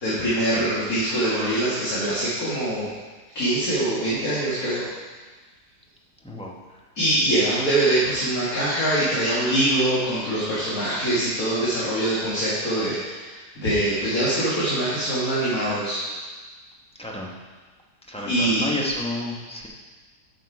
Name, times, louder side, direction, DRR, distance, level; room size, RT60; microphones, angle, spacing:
voice 1, 0.0-2.9 3.4-4.8 7.0-16.0 18.3-18.6, right 1 dB, 55° left, -9 dB, 2.3 m, -23 dB
voice 2, 6.2-6.5 17.0-17.3 18.1-19.7, left 1 dB, 5° left, -3 dB, 0.8 m, -30 dB
8.2 x 6.3 x 4.8 m, 1.3 s
omnidirectional pair, 1.8 m